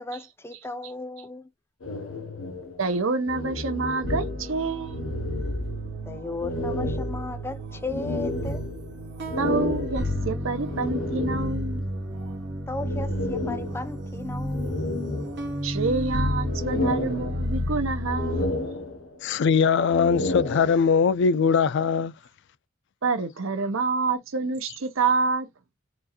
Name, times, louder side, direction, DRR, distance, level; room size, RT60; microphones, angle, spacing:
voice 1, 0.0-1.5 6.1-8.7 12.7-15.0, left 2 dB, 10° left, 0.5 m, -35 dB
sound 1, 1.8-4.6 4.9-6.0 6.4-11.8 12.8-14.1 14.5-15.8 16.2-17.7 18.0-19.3 19.8-21.1, left 2 dB, 90° left, 0.8 m, -32 dB
voice 2, 2.8-5.0 9.4-11.9 15.6-18.5 23.0-25.5, right 4 dB, 85° right, 0.8 m, -27 dB
sound 2, 4.0-18.5, equal, 60° right, 1.1 m, -32 dB
voice 3, 19.2-22.1, left 6 dB, 60° left, 0.4 m, -21 dB
4.4 x 2.5 x 2.9 m
head